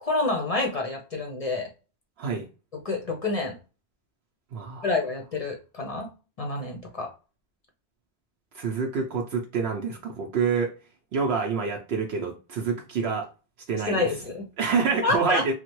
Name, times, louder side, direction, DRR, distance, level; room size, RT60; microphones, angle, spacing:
voice 1, 0.0-1.7 2.8-3.6 4.8-6.1 6.4-7.1 13.9-14.5 15.0-15.4, left 3 dB, 40° left, 0.6 m, -28 dB
voice 2, 4.5-4.9 8.5-10.7 11.1-13.3 13.7-14.1 14.6-15.5, right 5 dB, 70° right, 0.8 m, -27 dB
3.2 x 2.1 x 2.9 m
omnidirectional pair, 1.1 m